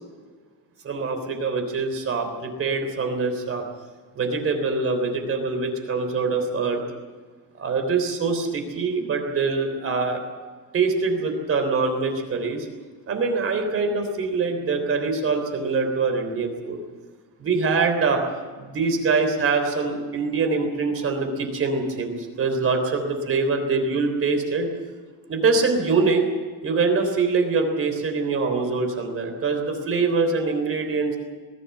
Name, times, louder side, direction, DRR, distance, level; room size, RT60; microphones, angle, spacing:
voice 1, 0.8-3.6 4.2-6.8 7.6-10.2 10.7-12.7 13.1-16.8 17.4-18.2 18.6-24.7 25.3-26.3 26.6-31.2, right 4 dB, 35° right, 5 dB, 3.5 m, -24 dB
21.0 x 15.5 x 8.4 m, 1.5 s
cardioid pair, 175°, 40 cm